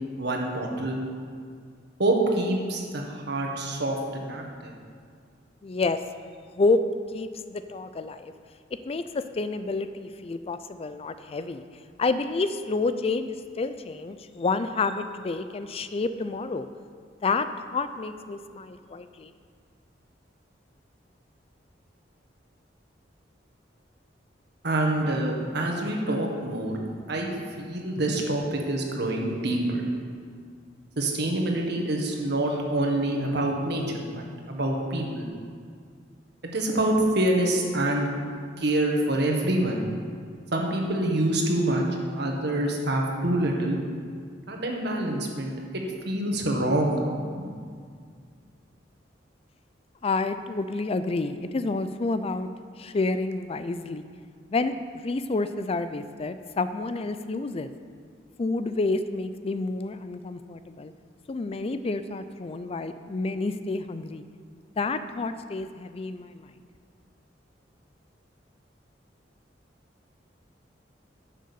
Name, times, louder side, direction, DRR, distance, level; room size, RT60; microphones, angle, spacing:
voice 1, 0.2-1.0 2.0-4.0 4.2-4.7 24.6-26.7 27.1-27.3 27.6-29.8 31.0-35.3 36.5-38.1 38.6-39.8 40.5-41.8 42.2-43.8 44.5-47.2, right 1 dB, 65° right, 1 dB, 1.6 m, -26 dB
voice 2, 5.6-6.0 6.6-6.8 7.1-8.3 8.8-11.6 12.0-16.7 17.2-19.3 50.0-52.5 52.8-54.1 54.5-57.7 58.4-60.9 61.3-64.2 64.8-66.5, left 3 dB, 35° left, 11 dB, 0.4 m, -29 dB
10.5 x 6.5 x 6.9 m, 2.1 s
head